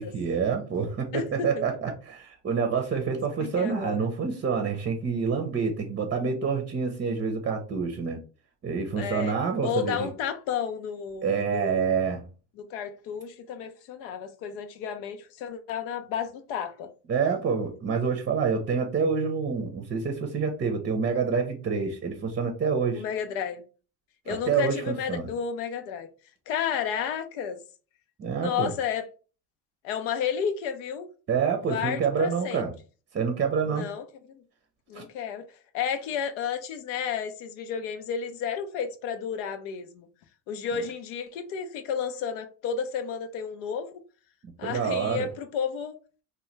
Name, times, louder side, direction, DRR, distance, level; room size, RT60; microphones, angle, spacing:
voice 1, 0.0-8.2 8.6-10.1 11.2-12.2 17.1-23.0 24.3-25.3 28.2-28.7 31.3-32.7 33.1-33.9 34.9-35.0 44.4-45.3, right 5 dB, 30° right, 0.6 m, -27 dB
voice 2, 1.1-1.6 3.4-4.1 9.0-11.9 12.6-16.9 23.0-23.6 24.3-26.1 26.5-27.6 28.3-29.1 29.8-31.1 31.7-32.6 33.7-34.0 34.3-34.4 34.9-35.4 35.7-40.1 40.5-43.9 44.6-46.0, left 7 dB, 80° left, 0.5 m, -32 dB
2.8 x 2.2 x 3.2 m
supercardioid pair, 85°, 39 cm